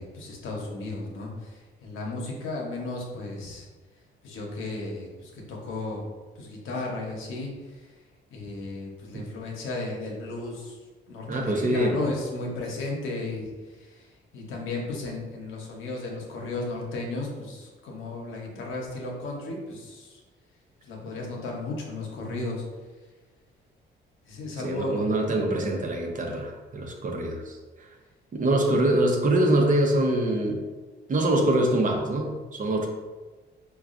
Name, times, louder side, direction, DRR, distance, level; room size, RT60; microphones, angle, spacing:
voice 1, 0.0-3.7 4.2-6.1 6.4-7.9 8.3-10.8 11.1-14.1 14.3-20.2 20.9-22.6 24.2-25.1, left 2 dB, 85° left, -1 dB, 0.8 m, -34 dB
voice 2, 11.3-12.0 24.6-27.9 28.3-30.6 31.1-32.9, right 1 dB, 40° right, 1 dB, 0.7 m, -24 dB
4.6 x 2.3 x 2.5 m, 1.3 s
cardioid pair, 90°, 20 cm